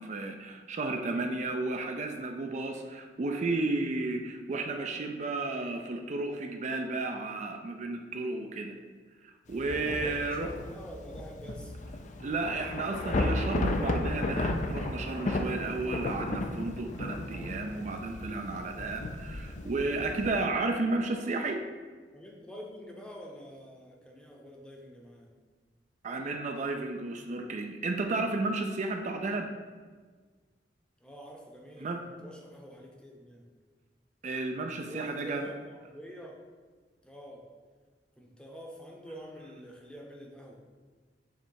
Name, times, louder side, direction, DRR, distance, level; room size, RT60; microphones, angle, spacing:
voice 1, 0.0-8.7 9.5-10.5 12.2-21.6 26.0-29.5 31.8-32.0 34.2-35.5, right 3 dB, 40° right, 4 dB, 0.4 m, -33 dB
Thunder / Rain, 9.5-20.4, left 2 dB, 45° left, 0.5 m, -34 dB
voice 2, 9.9-11.7 22.1-25.4 31.0-33.5 34.7-36.4 37.0-37.5 38.2-40.6, equal, 5° left, -1 dB, 0.8 m, -47 dB
6.6 x 3.2 x 4.6 m, 1.5 s
head